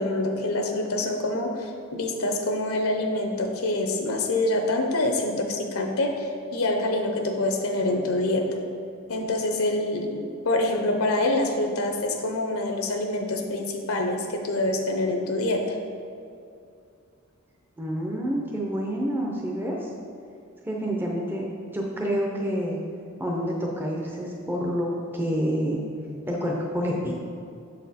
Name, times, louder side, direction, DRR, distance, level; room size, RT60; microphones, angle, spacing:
voice 1, 0.0-8.4 9.1-15.6, left 2 dB, 85° left, 3 dB, 0.7 m, -26 dB
voice 2, 17.8-19.9 20.7-21.4 21.7-22.8 23.2-25.8 26.3-27.1, equal, 10° right, -2 dB, 0.5 m, -28 dB
6.9 x 4.1 x 4.1 m, 2.4 s
head